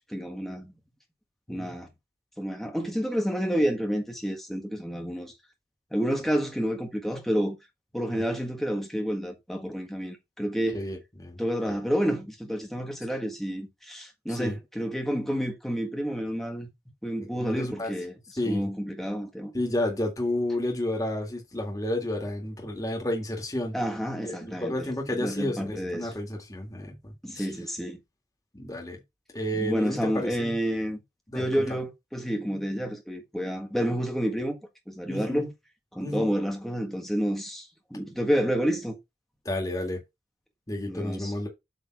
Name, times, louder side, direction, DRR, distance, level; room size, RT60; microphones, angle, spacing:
voice 1, 0.1-0.7 1.5-1.9 2.4-5.3 5.9-7.6 7.9-10.8 11.4-16.7 17.0-18.1 18.4-19.5 23.7-26.1 27.2-28.0 29.5-31.0 31.3-34.6 34.9-35.5 35.9-39.0 40.8-41.3, equal, ahead, 1.5 m, -29 dB
voice 2, 10.7-11.4 11.7-11.8 14.3-14.5 17.2-17.9 18.4-18.7 19.5-23.8 24.2-27.5 28.5-29.0 29.3-30.5 31.3-31.4 35.1-35.5 36.0-36.3 39.5-40.0 40.7-41.5, left 1 dB, 20° left, 2.0 m, -31 dB
8.3 x 3.7 x 4.7 m
head